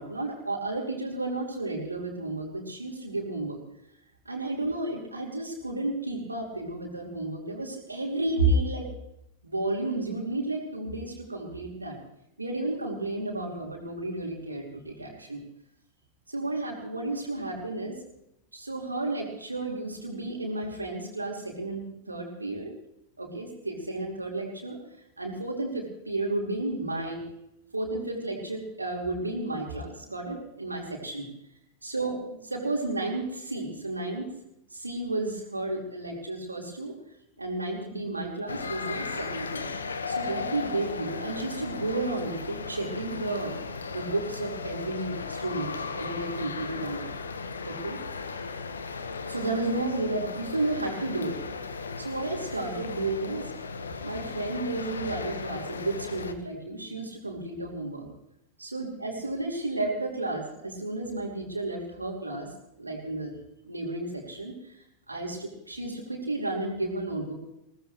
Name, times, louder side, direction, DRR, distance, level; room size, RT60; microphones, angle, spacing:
voice 1, 0.0-3.6 4.2-8.9 9.4-12.0 12.4-15.4 16.3-18.0 18.5-22.7 23.2-24.8 25.2-27.2 27.7-31.3 31.8-32.2 32.4-34.3 34.7-36.9 37.4-39.7 40.1-43.6 43.9-47.1 47.7-48.0 49.3-51.4 52.0-53.5 54.0-58.1 58.6-62.5 62.8-63.3 63.6-64.5 65.1-67.3, right 2 dB, 80° right, 0 dB, 4.4 m, -32 dB
sound 1, 38.5-56.3, left 4 dB, 70° left, 1.4 m, -36 dB
21.5 x 19.0 x 3.2 m, 0.81 s
figure-of-eight pair, 90°, 0 cm